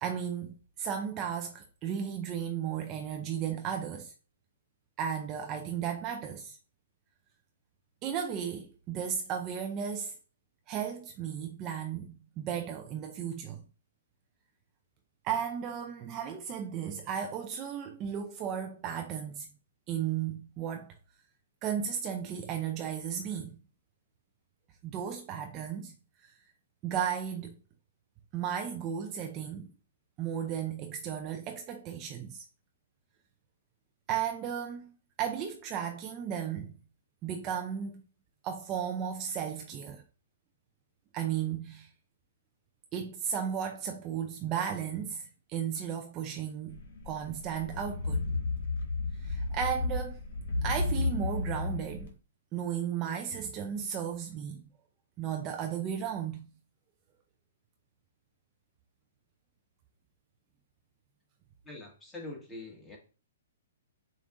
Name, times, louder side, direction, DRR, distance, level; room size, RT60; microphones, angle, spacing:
voice 1, 0.0-4.1 5.0-6.6 8.0-10.2 10.7-13.6 15.2-19.5 19.9-20.9 21.6-23.6 24.8-26.0 26.8-27.5 28.3-29.7 30.2-32.4 34.1-34.9 35.2-36.8 37.2-38.0 38.4-40.0 41.1-41.9 42.9-48.2 49.2-50.2 50.6-52.1 52.5-54.6 55.2-56.5, right 8 dB, 30° right, 0.5 m, -35 dB
sound 1, 46.7-52.1, left 3 dB, 60° left, 1.3 m, -33 dB
voice 2, 61.6-63.0, left 2 dB, 10° left, 1.6 m, -44 dB
6.8 x 2.5 x 2.5 m
hypercardioid pair, 130°, 0 cm